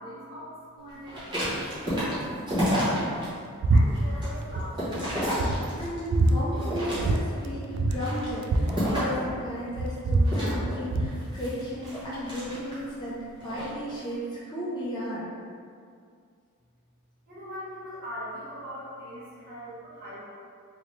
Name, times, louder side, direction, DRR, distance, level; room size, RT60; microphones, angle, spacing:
voice 1, 0.0-3.2 3.7-5.0 17.3-20.2, equal, 40° right, -10 dB, 1.2 m, -41 dB
sound 1, 1.1-3.3 3.7-6.1 6.5-7.4 7.9-9.2 10.2-12.9 13.4-13.7, equal, 20° right, 1.0 m, -30 dB
sound 2, 3.6-3.9 4.1-4.7 5.0-5.1 5.4-6.4 7.0-7.2 7.4-7.5 7.7-9.4 9.7-11.2, right 2 dB, 80° right, 0.3 m, -24 dB
voice 2, 5.7-15.3, equal, 20° left, -8 dB, 0.6 m, -34 dB
3.1 x 2.9 x 3.2 m, 2.2 s
head